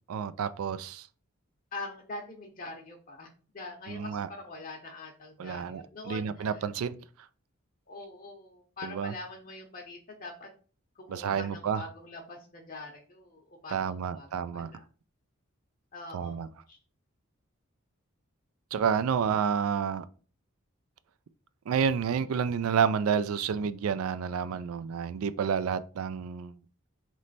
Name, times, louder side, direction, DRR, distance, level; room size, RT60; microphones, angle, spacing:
voice 1, 0.1-1.0 3.9-4.3 5.4-7.0 8.8-9.1 11.1-11.8 13.7-14.7 16.1-16.5 18.7-20.0 21.7-26.5, right 7 dB, 80° right, 0.3 m, -29 dB
voice 2, 1.7-3.3 3.5-6.7 7.9-10.5 11.0-14.9 15.9-16.8, left 2 dB, 40° left, 0.6 m, -44 dB
3.2 x 3.1 x 4.0 m
head